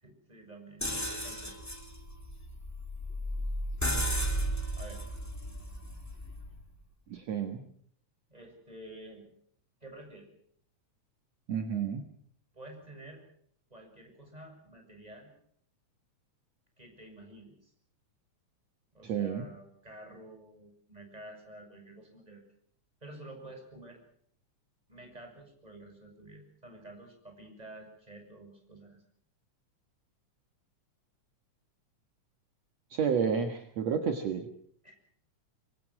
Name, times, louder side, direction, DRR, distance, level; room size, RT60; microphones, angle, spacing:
voice 1, 0.0-1.6 4.7-5.0 8.3-9.3 9.8-10.3 12.5-13.2 13.7-15.3 16.8-17.7 18.9-22.4 23.0-24.0 24.9-29.0 34.8-35.0, right 1 dB, 10° right, 3 dB, 6.7 m, -50 dB
sound 1, 0.8-6.6, equal, 5° left, 2.1 m, -34 dB
voice 2, 7.1-7.6 11.5-12.1 19.0-19.5 32.9-34.5, right 7 dB, 65° right, 5 dB, 2.7 m, -30 dB
25.0 x 23.5 x 6.2 m, 0.64 s
omnidirectional pair, 3.4 m